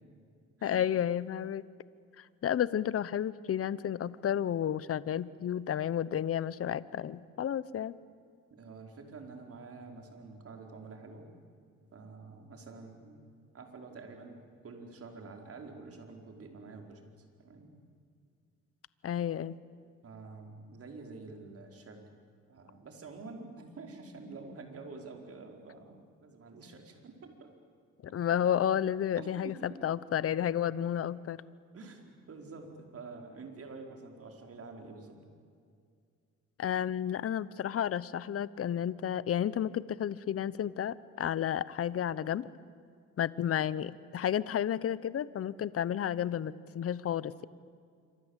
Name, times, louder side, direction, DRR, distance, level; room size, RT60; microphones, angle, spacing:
voice 1, 0.6-1.6 2.2-7.9 19.0-19.6 28.0-31.4 36.6-42.5 43.2-47.5, left 10 dB, 50° left, 18 dB, 0.9 m, -32 dB
voice 2, 8.5-11.3 11.9-13.2 13.5-17.0 17.4-17.7 20.0-22.0 22.5-27.5 29.2-29.8 31.7-35.2, right 3 dB, 50° right, 3 dB, 4.9 m, -48 dB
27.0 x 25.0 x 8.2 m, 2.2 s
cardioid pair, 90°, 30 cm